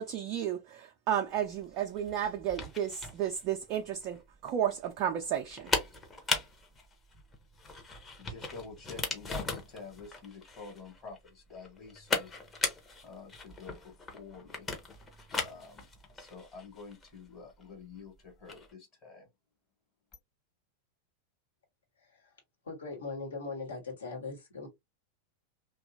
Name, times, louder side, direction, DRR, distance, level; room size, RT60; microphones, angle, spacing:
voice 1, 0.0-5.7, right 10 dB, 40° right, 0.4 m, -33 dB
sound 1, 1.4-18.7, left 3 dB, 20° left, 0.8 m, -38 dB
voice 2, 8.2-12.3 13.0-14.7 15.3-15.9 16.1-19.3, left 5 dB, 35° left, 1.3 m, -48 dB
voice 3, 22.0-22.4 22.6-24.7, left 3 dB, 70° left, 1.2 m, -40 dB
2.9 x 2.3 x 2.5 m
figure-of-eight pair, 90°, 0 cm